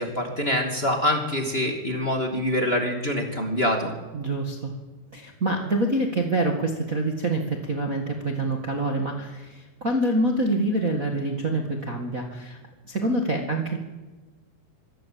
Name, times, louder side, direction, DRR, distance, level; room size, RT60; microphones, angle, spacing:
voice 1, 0.0-3.9, left 1 dB, 20° left, 2 dB, 1.6 m, -25 dB
voice 2, 4.1-4.7 5.1-12.6 12.9-13.8, right 1 dB, 80° right, 2 dB, 0.7 m, -26 dB
25.0 x 16.5 x 7.6 m, 1.2 s
omnidirectional pair, 4.9 m